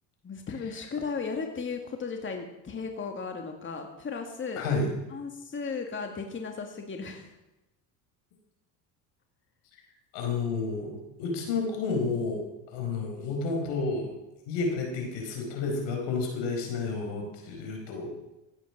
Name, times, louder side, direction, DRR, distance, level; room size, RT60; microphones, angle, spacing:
voice 1, 0.2-4.7 5.1-7.3, left 5 dB, 25° left, 4 dB, 2.0 m, -35 dB
voice 2, 4.6-4.9 10.1-14.1 14.5-18.1, left 4 dB, 75° left, 2 dB, 4.8 m, -31 dB
16.0 x 9.1 x 7.2 m, 0.95 s
supercardioid pair, 100°, 43 cm